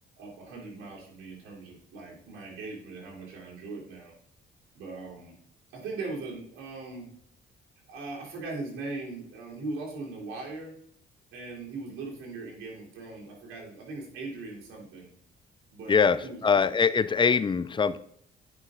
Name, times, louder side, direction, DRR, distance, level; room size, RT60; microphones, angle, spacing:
voice 1, 0.2-4.1 4.7-5.4 5.7-7.1 7.9-10.7 11.3-15.1 15.7-16.4, right 3 dB, 90° right, -3 dB, 3.3 m, -39 dB
voice 2, 16.4-18.0, left 5 dB, 25° left, 14 dB, 0.5 m, -22 dB
9.4 x 5.7 x 3.7 m, 0.65 s
cardioid pair, 90°, 20 cm